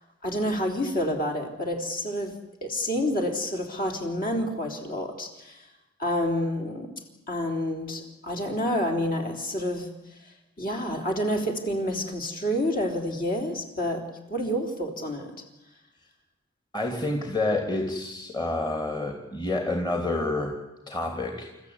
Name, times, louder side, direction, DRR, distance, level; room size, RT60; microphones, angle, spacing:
voice 1, 0.2-5.7 6.0-6.9 7.3-9.9 10.2-15.3, equal, 40° left, 2 dB, 3.9 m, -29 dB
voice 2, 16.7-20.6 20.9-21.5, left 2 dB, 20° left, 2 dB, 3.0 m, -28 dB
29.5 x 14.5 x 9.7 m, 0.98 s
head